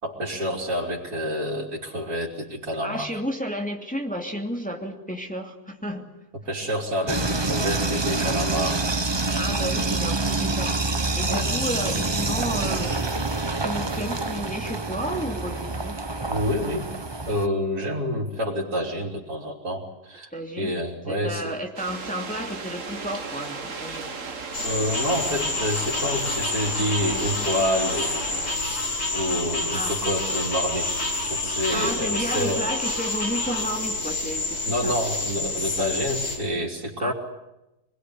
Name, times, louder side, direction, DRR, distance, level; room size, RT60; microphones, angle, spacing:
voice 1, 0.0-3.1 6.5-8.9 11.3-11.5 16.3-16.9 17.3-20.3 20.6-21.5 24.6-28.3 29.1-32.6 34.6-37.1, equal, 75° right, -6 dB, 4.1 m, -28 dB
voice 2, 2.8-6.1 9.3-13.0 13.6-16.0 20.3-20.7 21.1-24.2 29.7-29.9 31.5-35.0 37.0-37.1, equal, 5° left, 2 dB, 2.7 m, -32 dB
sound 1, 7.1-17.5, right 3 dB, 20° right, 0.9 m, -26 dB
sound 2, 21.8-28.6, right 4 dB, 55° right, 1.9 m, -36 dB
sound 3, 24.5-36.4, left 2 dB, 80° left, 8.0 m, -28 dB
25.0 x 21.0 x 10.0 m, 0.93 s
omnidirectional pair, 1.6 m